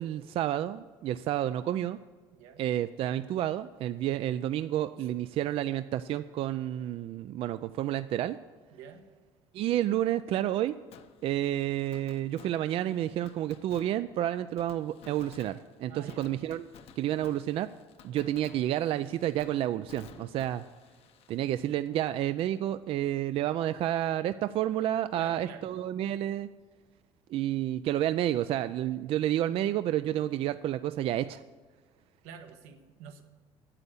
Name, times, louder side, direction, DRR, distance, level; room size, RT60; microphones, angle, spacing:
voice 1, 0.0-2.0 2.6-8.4 9.5-10.7 11.2-16.6 17.0-17.7 18.0-20.6 21.3-26.5 27.3-31.4, right 12 dB, 55° right, 12 dB, 0.4 m, -30 dB
voice 2, 8.7-9.0 15.9-16.2 25.2-25.7 32.2-33.2, right 7 dB, 85° right, 5 dB, 1.4 m, -48 dB
Fireworks, 10.9-22.6 22.9-23.0 29.6-29.7, left 7 dB, 55° left, 0.8 m, -54 dB
9.7 x 8.0 x 8.3 m, 1.4 s
cardioid pair, 120°, 12 cm